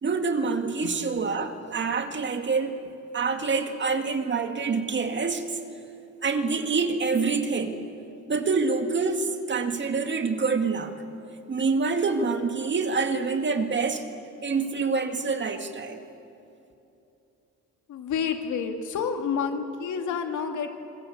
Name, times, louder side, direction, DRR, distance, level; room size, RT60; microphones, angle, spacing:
voice 1, 0.0-2.8 3.1-5.6 6.2-7.8 8.3-11.0 11.5-14.1 14.4-16.0, right 4 dB, 40° right, 2.2 m, -26 dB
voice 2, 17.9-20.7, left 6 dB, 80° left, 2.5 m, -29 dB
26.5 x 20.5 x 8.2 m
cardioid pair, 90°, 30 cm